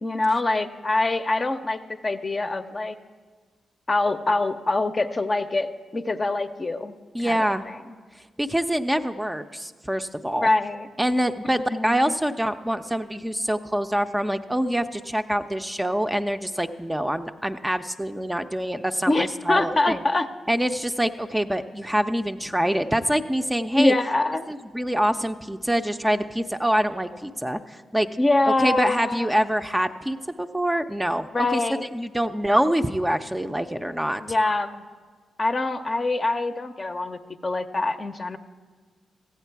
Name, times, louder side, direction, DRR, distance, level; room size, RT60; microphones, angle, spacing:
voice 1, 0.0-3.0 3.9-7.0 7.2-7.8 10.4-10.9 11.7-12.1 19.1-20.3 23.8-24.5 28.2-29.3 31.3-31.9 34.2-34.8 35.4-38.4, left 2 dB, 40° left, 7 dB, 0.6 m, -24 dB
voice 2, 7.1-7.7 8.4-10.5 11.0-20.0 20.5-23.9 24.5-28.1 28.5-34.2, equal, 10° right, 7 dB, 0.5 m, -25 dB
15.0 x 8.2 x 4.6 m, 1.5 s
supercardioid pair, 40°, 0 cm